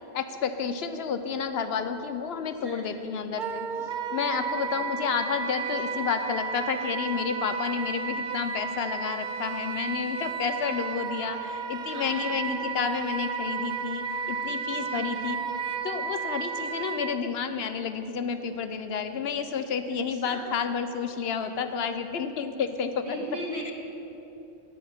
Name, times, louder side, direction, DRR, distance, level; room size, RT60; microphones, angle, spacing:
voice 1, 0.1-3.7 4.1-15.4 15.8-23.2 23.7-23.8, left 6 dB, 70° left, 9 dB, 0.8 m, -30 dB
voice 2, 2.6-3.3 3.7-3.9 4.2-4.8 11.7-12.5 14.8-15.2 20.1-20.5 22.9-23.7, equal, 75° right, -5 dB, 2.6 m, -40 dB
Wind instrument woodwind instrument, 3.4-17.2, right 5 dB, 55° right, 0.7 m, -33 dB
18.5 x 8.7 x 3.5 m, 2.9 s
omnidirectional pair, 1.1 m